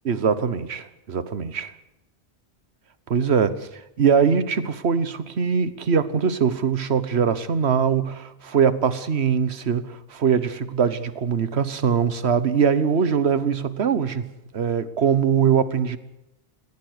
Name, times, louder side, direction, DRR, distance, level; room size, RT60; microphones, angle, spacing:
voice 1, 0.0-1.7 3.1-3.7 4.0-14.3 14.5-16.0, right 7 dB, 85° right, 1.4 m, -22 dB
19.5 x 16.5 x 8.1 m
omnidirectional pair, 1.1 m